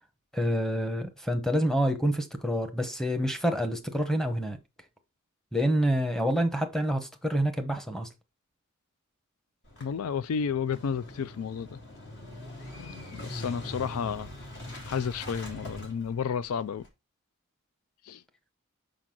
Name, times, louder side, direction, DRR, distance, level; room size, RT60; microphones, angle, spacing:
voice 1, 0.3-4.6 5.5-8.1, equal, ahead, 0.9 m, -27 dB
Motorcycle / Engine starting, 9.7-16.9, left 1 dB, 55° left, 1.9 m, -42 dB
voice 2, 9.8-11.8 13.1-14.3 14.8-16.8 18.1-18.2, left 7 dB, 90° left, 0.4 m, -31 dB
6.0 x 5.0 x 3.7 m
head